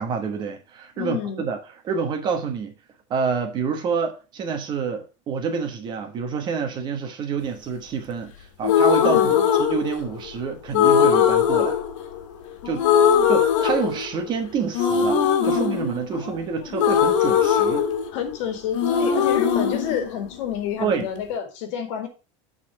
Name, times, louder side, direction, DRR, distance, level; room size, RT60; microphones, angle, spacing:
voice 1, 0.0-1.6 1.8-2.8 3.1-9.3 9.6-11.8 12.6-12.8 13.3-17.8 20.8-21.1, right 6 dB, 30° right, 1.2 m, -27 dB
voice 2, 1.0-1.4 9.0-9.5 12.6-13.3 16.1-16.8 18.1-22.1, left 8 dB, 70° left, 2.0 m, -29 dB
sound 1, 8.6-10.3 10.7-12.5 12.8-14.4 14.7-18.4 18.7-20.8, left 8 dB, 85° left, 1.5 m, -20 dB
9.2 x 4.1 x 4.7 m
cardioid pair, 170°, 16 cm